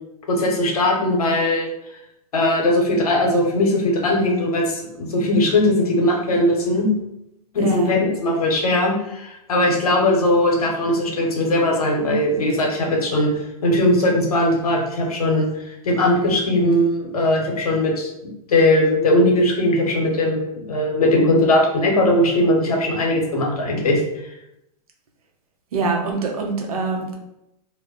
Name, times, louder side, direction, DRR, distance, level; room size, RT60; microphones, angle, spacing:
voice 1, 0.3-1.7 2.3-6.9 7.5-13.3 13.6-15.5 15.8-18.1 18.5-24.0, left 1 dB, 80° left, 0 dB, 0.8 m, -19 dB
voice 2, 7.6-7.9 25.7-27.1, right 3 dB, 75° right, 1 dB, 0.7 m, -24 dB
2.1 x 2.1 x 3.6 m, 0.84 s
hypercardioid pair, 110°, 19 cm